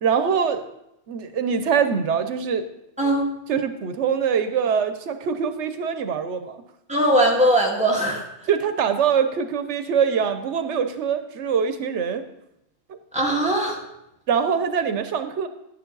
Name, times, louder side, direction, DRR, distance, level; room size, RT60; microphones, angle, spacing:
voice 1, 0.0-0.6 1.1-2.7 3.5-6.6 8.5-12.2 12.9-13.0 14.3-15.5, right 7 dB, 85° right, 9 dB, 1.0 m, -23 dB
voice 2, 6.9-8.2 13.1-13.8, right 1 dB, 5° right, -3 dB, 1.9 m, -20 dB
11.0 x 9.7 x 3.9 m, 0.84 s
omnidirectional pair, 1.2 m